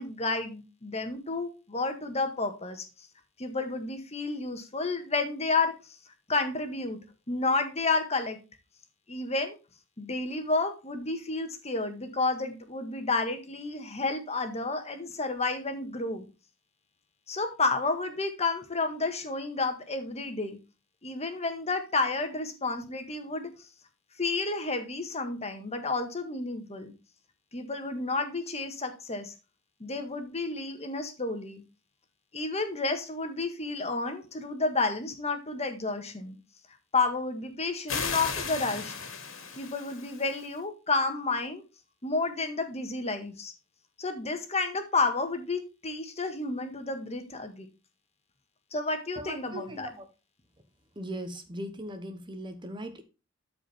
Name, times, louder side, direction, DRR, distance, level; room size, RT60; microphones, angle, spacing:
voice 1, 0.0-2.9 3.4-6.0 6.3-7.0 7.3-8.4 9.1-9.6 10.0-16.3 17.3-20.6 21.0-23.5 24.2-26.9 27.5-29.3 29.8-31.6 32.3-36.4 36.9-38.9 39.6-41.6 42.0-43.5 44.0-47.7 48.7-49.9, left 3 dB, 30° left, 1.8 m, -31 dB
sound 1, 37.9-40.5, left 5 dB, 80° left, 2.5 m, -35 dB
voice 2, 49.1-50.1 51.0-53.0, right 1 dB, 25° right, 1.1 m, -39 dB
12.5 x 5.0 x 3.5 m
head